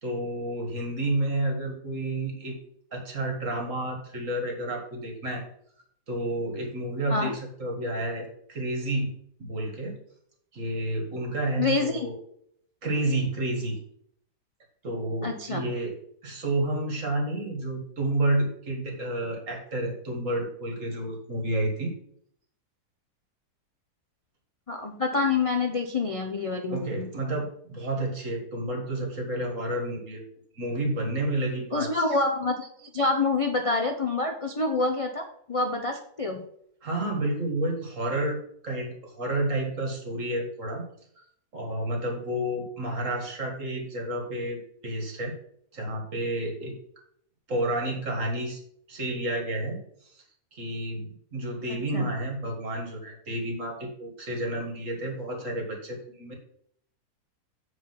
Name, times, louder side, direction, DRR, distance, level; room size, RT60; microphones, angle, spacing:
voice 1, 0.0-2.6 2.9-5.5 6.1-9.1 9.4-10.0 10.5-12.2 12.8-13.8 14.8-15.9 16.2-21.9 26.7-30.2 30.6-32.0 36.8-40.9 41.2-41.3 41.5-45.3 45.7-46.7 47.5-48.6 48.9-49.8 50.1-50.2 50.5-56.3, right 1 dB, 50° right, 1 dB, 2.2 m, -30 dB
voice 2, 11.6-12.1 15.2-15.7 24.7-27.1 31.7-36.4 51.7-52.1, left 3 dB, 65° left, 4 dB, 0.3 m, -27 dB
7.5 x 4.6 x 5.9 m, 0.67 s
omnidirectional pair, 1.7 m